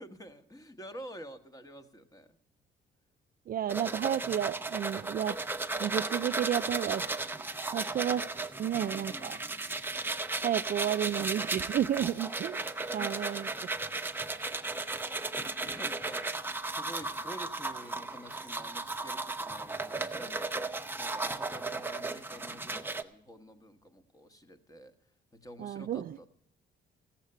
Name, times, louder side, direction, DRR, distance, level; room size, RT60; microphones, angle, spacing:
voice 1, 0.0-2.4 9.1-9.5 12.7-14.2 15.6-20.6 21.0-24.9 25.4-26.3, equal, 15° left, 1.2 m, -49 dB
voice 2, 3.5-5.4 5.8-7.0 7.7-8.2 8.6-9.4 10.4-12.6 12.9-13.5 25.6-26.2, right 10 dB, 50° right, 0.4 m, -31 dB
sound 1, 3.7-23.0, right 3 dB, 10° right, 0.7 m, -35 dB
14.5 x 7.3 x 6.6 m
cardioid pair, 90°, 20 cm